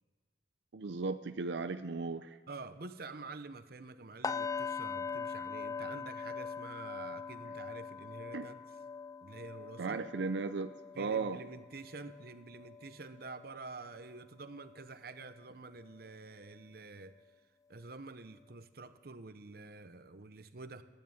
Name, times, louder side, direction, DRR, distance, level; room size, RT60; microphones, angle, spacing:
voice 1, 0.7-2.4 8.3-8.5 9.8-11.4, right 4 dB, 90° right, 9 dB, 0.6 m, -36 dB
voice 2, 2.5-8.6 9.2-10.0 10.9-17.1 17.7-20.8, right 3 dB, 60° right, 10 dB, 0.9 m, -48 dB
sound 1, 4.2-14.2 14.5-14.8 15.2-15.4, left 5 dB, 20° left, 0.4 m, -42 dB
15.5 x 10.0 x 8.9 m, 1.5 s
head